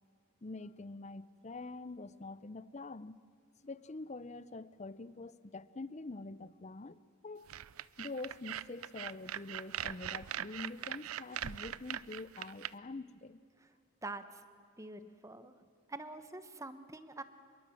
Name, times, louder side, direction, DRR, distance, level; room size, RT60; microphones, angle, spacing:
voice 1, 0.4-3.2 3.6-7.5 8.0-13.4, left 3 dB, 30° left, 0.6 m, -45 dB
sound 1, 7.5-12.7, right 10 dB, 80° right, 0.5 m, -41 dB
voice 2, 14.0-14.4 14.8-15.6 15.9-17.2, right 2 dB, 15° right, 1.1 m, -45 dB
25.5 x 22.5 x 7.7 m
head